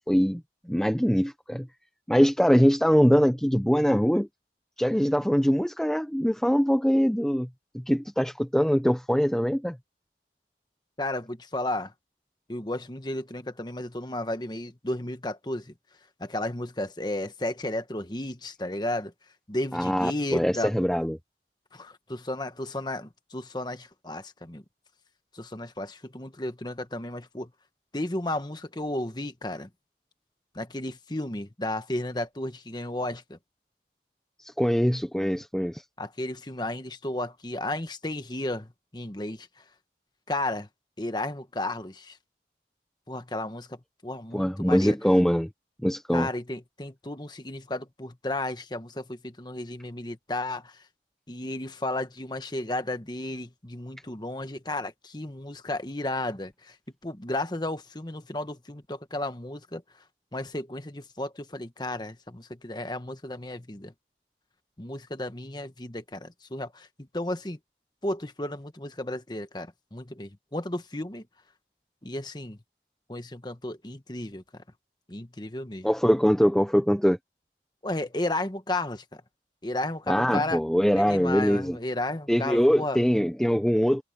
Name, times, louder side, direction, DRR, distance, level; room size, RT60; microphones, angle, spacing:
voice 1, 0.1-1.7 2.1-4.3 4.8-7.5 7.7-9.8 19.7-21.2 34.4-35.8 44.3-45.5 45.8-46.3 75.8-77.2 80.1-81.8 82.3-84.0, equal, 5° left, 0.8 m, -23 dB
voice 2, 11.0-11.9 12.5-15.7 16.2-19.1 19.5-20.7 21.7-24.6 25.3-27.5 27.9-29.7 30.5-33.4 36.0-39.5 40.3-40.7 41.0-42.2 43.1-43.8 44.0-45.0 46.1-50.8 51.3-56.7 57.0-59.8 60.3-63.9 64.8-66.9 67.1-67.6 68.0-71.2 72.0-72.6 73.1-74.4 75.1-75.9 77.8-79.2 79.6-80.6 81.1-83.0, left 1 dB, 25° left, 1.3 m, -33 dB
head